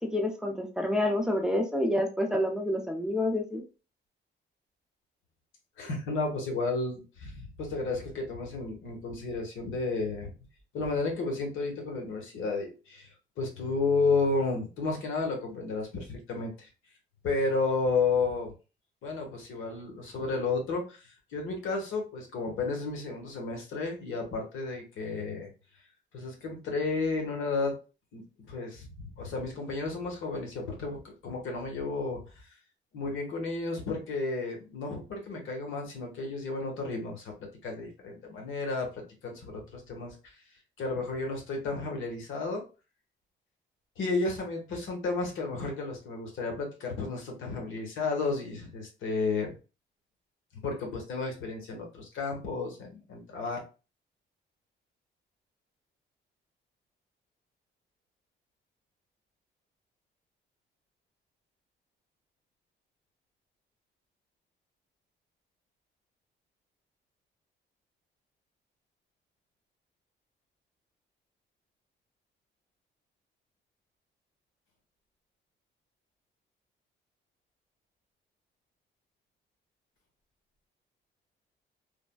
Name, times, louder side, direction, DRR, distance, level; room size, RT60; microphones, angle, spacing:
voice 1, 0.0-3.6, left 1 dB, 5° right, 2 dB, 0.6 m, -28 dB
voice 2, 5.8-10.3 10.7-16.7 17.2-18.5 19.0-25.5 26.1-27.7 28.1-28.2 28.5-32.2 32.9-40.2 40.8-42.6 44.0-49.5 50.6-53.6, left 3 dB, 80° left, 1 dB, 1.1 m, -32 dB
3.4 x 2.2 x 2.2 m, 0.32 s
cardioid pair, 90°, 20 cm